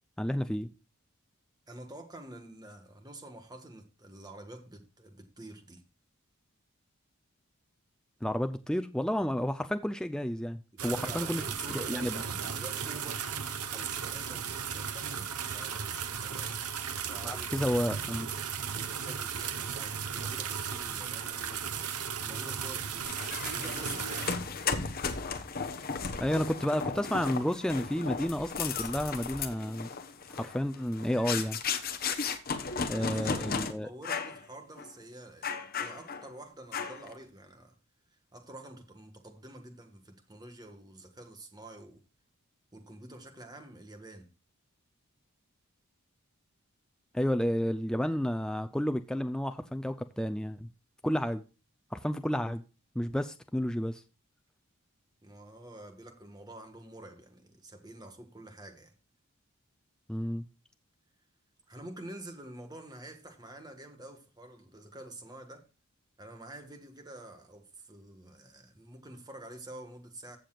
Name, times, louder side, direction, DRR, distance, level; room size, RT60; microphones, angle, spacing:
voice 1, 0.2-0.7 8.2-11.4 11.7-12.2 17.2-18.3 26.2-29.9 30.3-31.6 32.9-33.9 47.1-50.7 51.0-51.4 51.9-52.6 53.0-54.0 60.1-60.5, equal, 5° left, 0.4 m, -31 dB
voice 2, 1.7-5.9 10.7-13.3 13.7-16.6 17.1-17.5 18.7-21.8 22.2-23.2 23.5-24.3 32.9-37.8 38.1-42.0 42.7-44.3 55.2-58.9 61.7-65.7 66.2-70.4, right 1 dB, 20° right, 1.5 m, -48 dB
sound 1, 10.8-24.4, right 7 dB, 90° right, 1.1 m, -36 dB
sound 2, 23.0-33.7 34.0-34.4 34.8-34.9 35.4-36.3 36.7-37.1, left 5 dB, 40° left, 1.1 m, -35 dB
15.0 x 6.9 x 2.4 m
head